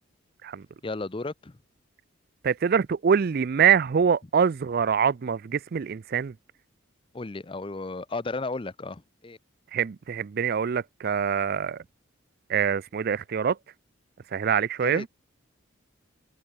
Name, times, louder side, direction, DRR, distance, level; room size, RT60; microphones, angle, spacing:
voice 1, 0.8-1.6 7.1-9.4 14.8-15.0, left 3 dB, 25° left, 0.6 m, -34 dB
voice 2, 2.4-6.3 9.7-11.8 12.5-13.6 14.3-15.1, right 7 dB, 50° right, 0.4 m, -24 dB
head